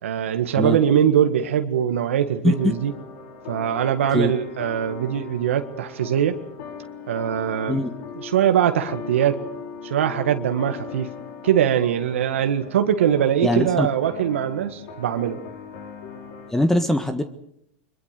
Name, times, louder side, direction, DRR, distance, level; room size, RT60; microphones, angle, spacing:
voice 1, 0.0-2.9 3.5-6.4 7.1-7.8 8.2-9.4 9.8-11.1 11.4-15.4, right 9 dB, 85° right, 6 dB, 1.8 m, -22 dB
sound 1, 2.5-16.5, left 5 dB, 60° left, 5.7 m, -39 dB
voice 2, 13.4-13.9 16.5-17.2, left 1 dB, 5° left, 9 dB, 1.5 m, -21 dB
24.5 x 22.0 x 6.8 m, 0.76 s
hypercardioid pair, 115°, 7 cm